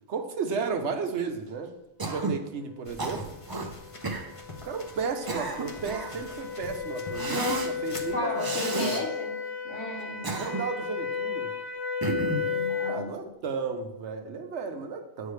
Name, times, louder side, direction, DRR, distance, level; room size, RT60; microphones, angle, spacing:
voice 1, 0.1-1.7 2.0-3.3 4.6-9.0 10.2-11.5 12.8-15.3, right 5 dB, 70° right, 6 dB, 1.0 m, -34 dB
Cough, 2.0-2.4 3.0-3.7 4.0-4.3 5.0-6.2 7.1-7.7 8.4-9.0 10.0-10.8 12.0-12.5, right 2 dB, 30° right, 0.4 m, -31 dB
sound 1, 2.8-8.2, left 2 dB, 35° left, 0.7 m, -45 dB
sound 2, 3.2-13.1, left 6 dB, 65° left, 0.9 m, -34 dB
voice 2, 8.1-9.3 9.6-10.3 12.4-13.3, left 2 dB, 85° left, -1 dB, 1.9 m, -35 dB
8.1 x 5.4 x 3.2 m, 0.91 s
omnidirectional pair, 1.2 m